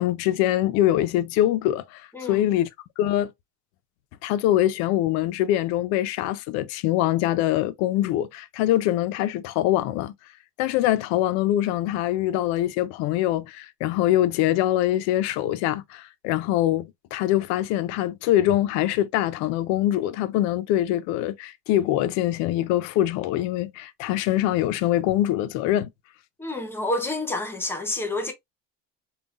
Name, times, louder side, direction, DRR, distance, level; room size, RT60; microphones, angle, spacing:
voice 1, 0.0-2.7 3.0-3.3 4.2-10.1 10.6-25.9, left 13 dB, 65° left, 0.5 m, -23 dB
voice 2, 2.1-2.5 26.4-28.3, left 2 dB, 10° left, 0.7 m, -28 dB
5.4 x 2.3 x 2.3 m
cardioid pair, 165°, 30 cm